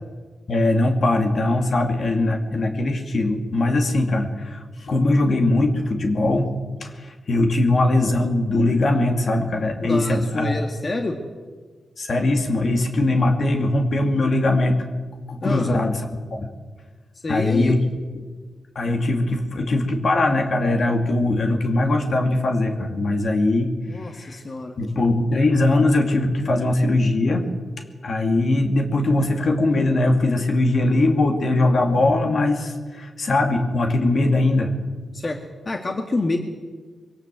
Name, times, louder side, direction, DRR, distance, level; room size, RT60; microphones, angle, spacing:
voice 1, 0.5-6.5 6.8-10.6 12.0-14.8 15.3-16.0 16.3-16.5 17.3-17.8 18.7-23.7 24.0-24.4 24.8-27.5 28.0-34.7, left 2 dB, 60° left, 3 dB, 2.6 m, -21 dB
voice 2, 9.8-11.2 15.4-15.7 17.2-17.8 23.9-24.8 35.1-35.4 35.7-36.4, left 2 dB, 45° left, 3 dB, 2.1 m, -27 dB
22.0 x 17.5 x 7.7 m, 1.4 s
cardioid pair, 55°, 0 cm